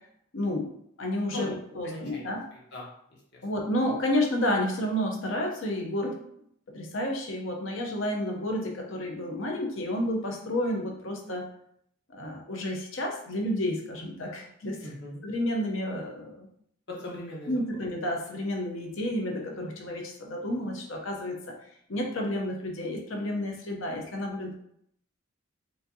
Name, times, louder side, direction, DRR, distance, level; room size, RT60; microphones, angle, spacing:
voice 1, 0.3-0.7 1.0-2.4 3.4-6.2 6.7-11.4 12.1-14.8 15.2-16.5 17.5-21.4 21.9-24.5, left 1 dB, 70° left, 1 dB, 0.8 m, -30 dB
voice 2, 1.8-2.9 3.3-3.4 14.8-15.2 16.9-17.6, left 1 dB, 55° left, -4 dB, 1.2 m, -39 dB
4.9 x 2.7 x 2.7 m, 0.70 s
head